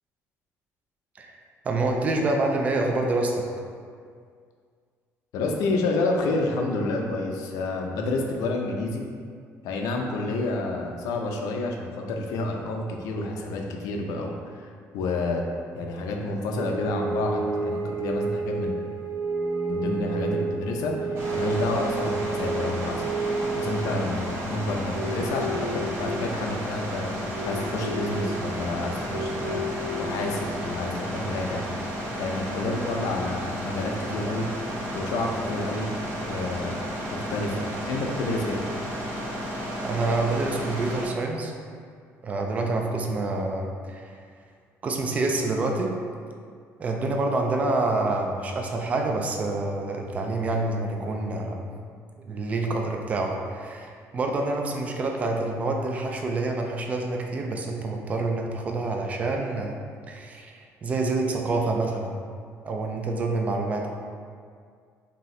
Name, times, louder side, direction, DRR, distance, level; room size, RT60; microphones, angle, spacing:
voice 1, 1.6-3.5 39.8-41.5 42.2-44.2 44.8-45.9 46.8-51.7 52.3-59.8 60.1-60.5 60.8-62.2 62.6-63.9, right 2 dB, 25° right, 2 dB, 0.4 m, -27 dB
voice 2, 5.3-9.0 9.6-15.4 15.7-18.7 19.7-23.0 23.6-27.1 27.4-29.7 30.0-31.7 32.2-34.5 34.9-35.9 36.2-36.8 37.1-38.6, left 2 dB, 90° left, 1 dB, 0.6 m, -29 dB
sound 1, 16.5-30.8, right 2 dB, 80° right, 0.8 m, -31 dB
sound 2, 21.1-41.1, equal, 45° right, 0.9 m, -33 dB
5.2 x 2.8 x 3.2 m, 2.1 s
cardioid pair, 175°, 6 cm